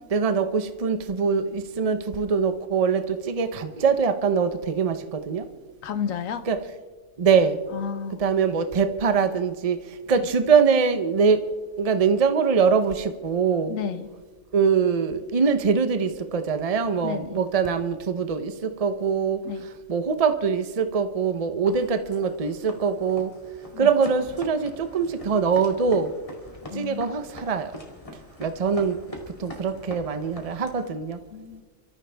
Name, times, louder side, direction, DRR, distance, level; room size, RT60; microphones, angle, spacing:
voice 1, 0.1-5.4 6.5-6.6 7.2-7.6 8.2-9.8 10.1-11.4 11.8-13.8 14.5-19.4 19.9-23.3 23.8-26.1 26.7-27.7 28.4-29.0 29.4-31.2, right 5 dB, 30° right, 9 dB, 0.8 m, -23 dB
voice 2, 5.8-6.5 7.7-8.2 10.2-10.3 13.7-14.1 17.0-17.4 19.4-19.7 23.7-23.9 26.7-27.0 31.3-31.6, left 7 dB, 85° left, 10 dB, 1.3 m, -32 dB
sound 1, 21.7-30.9, left 1 dB, 25° left, 2.6 m, -43 dB
30.0 x 14.0 x 3.4 m, 1.4 s
omnidirectional pair, 1.3 m